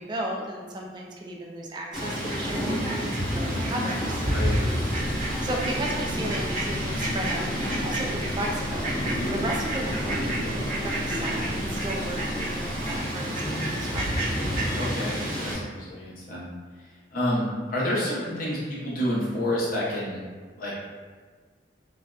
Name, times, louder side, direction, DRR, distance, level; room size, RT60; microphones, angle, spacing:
voice 1, 0.0-4.2 5.4-8.9 9.3-14.3, right 1 dB, 25° right, -1 dB, 0.3 m, -34 dB
Fowl, 1.9-15.5, equal, 15° left, 0.9 m, -28 dB
sound 1, 5.0-13.0, equal, 35° left, 1.3 m, -39 dB
voice 2, 14.7-16.5 16.8-20.2 20.6-20.8, left 1 dB, 55° left, -7 dB, 0.7 m, -29 dB
2.6 x 2.1 x 2.3 m, 1.5 s
head